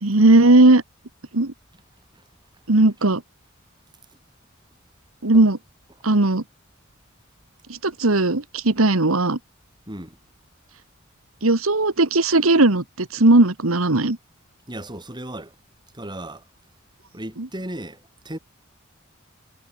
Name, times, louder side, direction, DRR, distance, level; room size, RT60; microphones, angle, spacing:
voice 1, 0.0-0.8 1.3-1.5 2.7-3.2 5.2-5.6 6.0-6.4 7.7-9.4 11.4-14.2 17.4-17.5, right 2 dB, 85° right, 1.7 m, -17 dB
voice 2, 9.9-10.2 14.7-15.6 15.9-16.4 17.1-18.4, right 1 dB, 20° right, 7.5 m, -35 dB
head